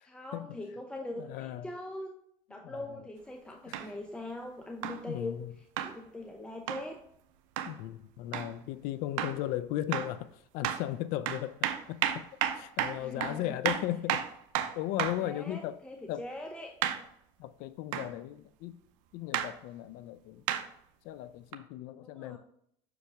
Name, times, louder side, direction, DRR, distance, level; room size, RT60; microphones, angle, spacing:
voice 1, 0.0-2.1 2.5-5.4 5.8-7.0 12.7-13.5 15.2-16.8 22.0-22.4, left 1 dB, 5° left, 0.7 m, -42 dB
voice 2, 1.0-1.7 2.6-3.1 3.7-3.8 5.1-5.5 7.7-11.6 11.9-12.0 12.5-14.2 14.6-15.8 16.1-16.2 17.4-18.8 19.1-20.4 21.0-22.4, left 13 dB, 70° left, 0.5 m, -36 dB
sound 1, 3.7-3.9 4.8-5.0 5.8-5.9 6.7-6.9 7.6-7.7 8.3-8.5 9.2-9.4 9.9-10.2 10.6-10.8 11.3-15.3 16.8-17.1 17.9-18.1 19.3-19.5 20.5-20.7 21.5-21.6, right 11 dB, 85° right, 0.6 m, -32 dB
6.3 x 4.8 x 3.4 m
supercardioid pair, 105°, 16 cm